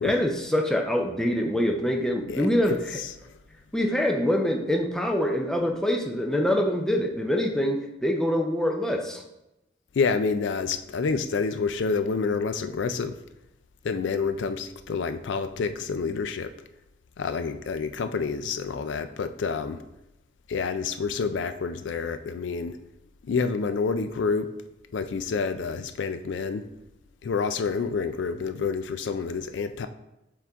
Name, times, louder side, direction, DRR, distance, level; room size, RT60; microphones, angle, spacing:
voice 1, 0.0-3.0 3.7-9.2, left 1 dB, 5° left, 0.6 m, -25 dB
voice 2, 10.0-13.2 13.8-16.5 17.2-19.8 20.5-22.8 23.2-24.5 24.9-26.6 27.2-29.9, left 5 dB, 75° left, 0.4 m, -28 dB
6.9 x 3.8 x 3.6 m
head